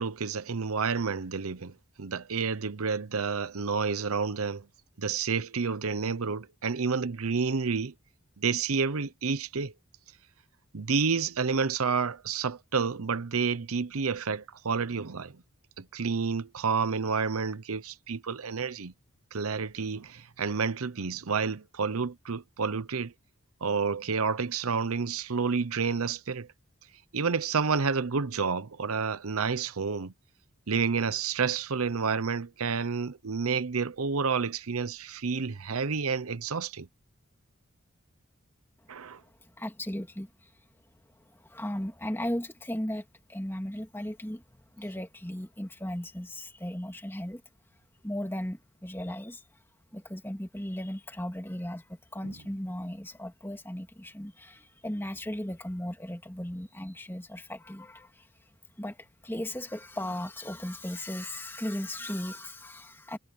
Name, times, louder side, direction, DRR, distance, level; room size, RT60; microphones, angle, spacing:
voice 1, 0.0-4.7 5.0-7.9 8.4-9.7 10.7-15.4 15.8-18.9 19.3-23.1 23.6-26.5 27.1-30.1 30.7-36.9 38.9-39.2 52.2-52.3, right 5 dB, 80° right, 0.8 m, -29 dB
voice 2, 38.8-40.5 41.3-47.4 48.0-49.4 49.9-58.3 58.8-63.2, left 1 dB, 10° left, 2.8 m, -37 dB
head